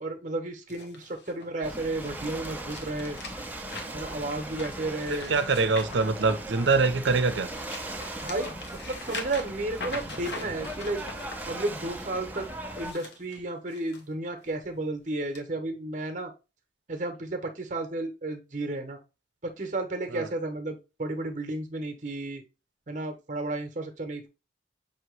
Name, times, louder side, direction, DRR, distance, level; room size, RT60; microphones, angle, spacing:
voice 1, 0.0-3.2 3.9-5.3 8.2-8.6 8.9-11.0 11.5-12.5 12.8-16.3 16.9-19.0 19.4-22.4 22.9-24.3, right 2 dB, 45° right, 0.9 m, -33 dB
sound 1, 0.7-6.8 7.3-11.3 12.6-14.0 14.4-14.7 15.3-15.4, left 3 dB, 65° left, 1.0 m, -42 dB
Ocean / Boat Water vehicle, 1.6-12.9, right 1 dB, 10° right, 0.5 m, -39 dB
voice 2, 5.1-7.5 20.1-20.3, right 4 dB, 85° right, 0.6 m, -24 dB
5.7 x 2.9 x 3.1 m
head